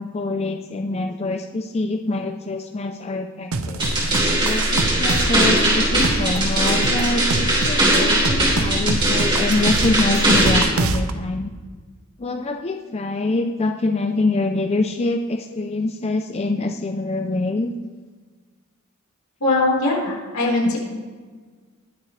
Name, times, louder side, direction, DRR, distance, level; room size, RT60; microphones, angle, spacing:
voice 1, 0.0-3.8 4.4-11.5 12.2-17.7, left 2 dB, 30° left, 5 dB, 0.5 m, -25 dB
sound 1, 3.5-11.1, right 3 dB, 80° right, 0.8 m, -26 dB
sound 2, 3.8-10.6, right 1 dB, 20° right, 3.5 m, -19 dB
voice 2, 19.4-20.8, left 2 dB, 75° left, -4 dB, 4.3 m, -20 dB
21.0 x 7.7 x 3.2 m, 1.5 s
head